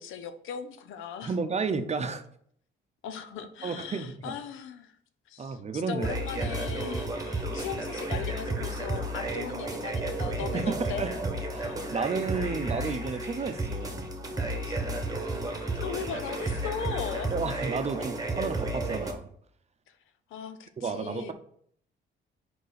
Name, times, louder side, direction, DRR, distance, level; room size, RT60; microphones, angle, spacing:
voice 1, 0.0-1.4 3.0-5.0 5.3-11.1 11.6-11.8 14.6-14.8 15.7-17.3 19.9-20.0 20.3-21.3, left 7 dB, 85° left, 10 dB, 0.6 m, -38 dB
voice 2, 1.2-2.2 3.6-4.3 5.4-6.1 10.5-11.1 11.5-14.1 17.3-19.3 20.8-21.3, right 4 dB, 35° right, 9 dB, 0.7 m, -32 dB
sound 1, 6.0-19.1, right 2 dB, 20° right, 1.1 m, -32 dB
4.6 x 4.4 x 5.1 m, 0.64 s
cardioid pair, 90°, 20 cm